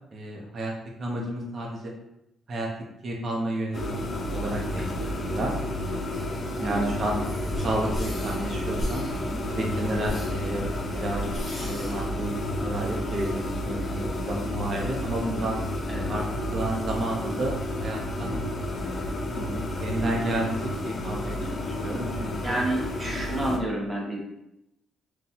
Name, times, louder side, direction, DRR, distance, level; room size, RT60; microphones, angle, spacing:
voice 1, 0.1-0.7 1.0-1.9 2.5-2.7 3.0-3.9 4.3-5.5 6.6-7.1 7.6-9.0 9.5-10.6 11.0-11.2 11.6-12.3 12.6-15.6 16.1-18.3 18.7-19.1 19.8-22.5, right 1 dB, 45° right, -1 dB, 0.8 m, -31 dB
sound 1, 3.7-23.6, left 1 dB, 45° left, 0.5 m, -31 dB
voice 2, 6.6-7.0 9.1-9.4 15.9-16.1 19.3-19.7 22.4-24.2, right 1 dB, 15° right, -2 dB, 0.8 m, -31 dB
sound 2, 7.2-12.8, equal, 25° left, 1.0 m, -38 dB
3.8 x 2.3 x 2.8 m, 0.85 s
cardioid pair, 90°, 0 cm